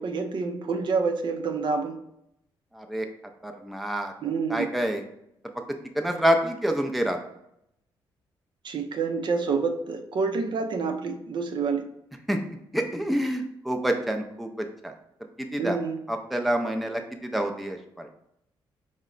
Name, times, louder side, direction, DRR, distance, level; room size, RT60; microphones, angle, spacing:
voice 1, 0.0-2.0 4.2-4.7 8.6-11.8 15.6-16.0, right 4 dB, 55° right, 5 dB, 0.5 m, -28 dB
voice 2, 2.7-3.1 3.4-4.1 4.5-5.0 6.0-7.2 12.3-14.9 15.4-15.8 16.1-18.1, right 1 dB, ahead, 3 dB, 0.5 m, -27 dB
4.6 x 2.1 x 3.8 m, 0.77 s
cardioid pair, 85°, 9 cm